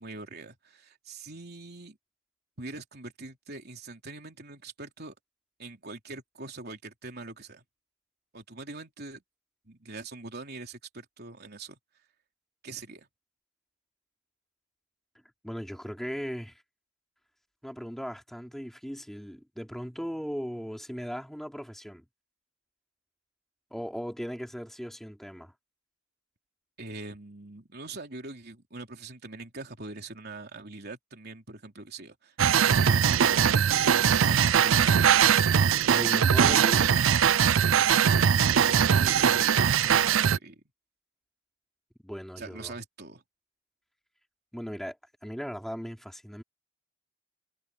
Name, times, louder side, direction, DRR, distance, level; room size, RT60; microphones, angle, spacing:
voice 1, 0.0-2.0 2.6-5.2 5.6-7.6 8.3-9.2 9.7-11.8 12.6-13.1 26.8-32.3 32.7-35.8 37.7-40.6 42.4-43.2, right 3 dB, 50° right, 3.7 m, -43 dB
voice 2, 15.4-16.6 17.6-22.0 23.7-25.5 35.9-37.0 42.0-42.7 44.5-45.0 45.2-46.4, equal, ahead, 3.5 m, -37 dB
sound 1, 32.4-40.4, right 8 dB, 75° right, 0.5 m, -21 dB
head